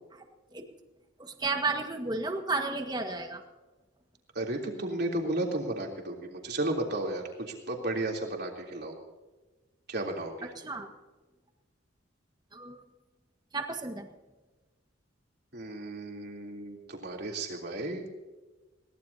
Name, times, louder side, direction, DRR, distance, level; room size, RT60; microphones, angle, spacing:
voice 1, 1.2-3.4 10.6-10.9 12.5-12.8 13.5-14.1, right 3 dB, 20° right, 5 dB, 1.6 m, -32 dB
voice 2, 4.3-8.9 9.9-10.5 15.5-18.2, right 2 dB, 55° right, 1 dB, 3.3 m, -34 dB
22.0 x 18.0 x 2.8 m, 1.2 s
head